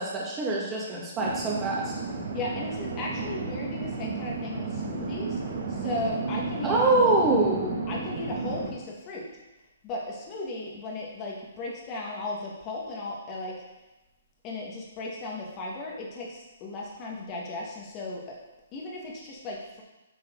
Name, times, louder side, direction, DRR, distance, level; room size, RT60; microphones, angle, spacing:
voice 1, 0.0-1.9 6.6-7.8, right 2 dB, 15° right, -4 dB, 1.7 m, -24 dB
sound 1, 1.2-8.7, right 4 dB, 60° right, 2.1 m, -33 dB
voice 2, 2.3-7.2 7.9-9.3 9.8-13.6 14.4-18.4 18.7-19.8, left 2 dB, 25° left, -3 dB, 1.6 m, -36 dB
8.1 x 4.4 x 3.8 m, 1.1 s
hypercardioid pair, 150°, 0 cm